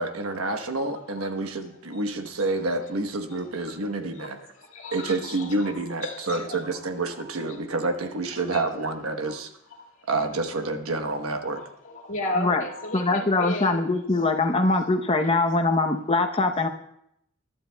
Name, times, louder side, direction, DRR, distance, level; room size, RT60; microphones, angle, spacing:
voice 1, 0.0-4.4 4.9-9.5 10.1-11.6, right 2 dB, 90° right, 7 dB, 1.1 m, -28 dB
voice 2, 1.6-2.0 2.7-2.9 3.3-6.8 7.1-7.6 8.3-8.8 9.2-9.3 9.8-10.1 11.5-13.8 15.2-15.3, left 2 dB, 65° left, -2 dB, 2.0 m, -36 dB
voice 3, 12.9-16.7, left 3 dB, 25° left, 5 dB, 0.8 m, -22 dB
21.5 x 12.0 x 2.3 m, 0.75 s
head